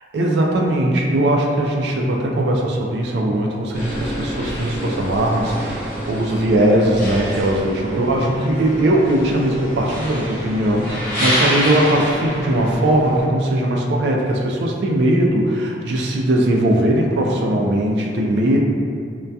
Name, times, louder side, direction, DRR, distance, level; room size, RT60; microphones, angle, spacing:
voice 1, 0.1-18.6, right 1 dB, 75° right, -1 dB, 0.3 m, -19 dB
sound 1, 3.7-13.2, equal, 50° left, 0.9 m, -27 dB
2.2 x 2.2 x 2.6 m, 2.3 s
head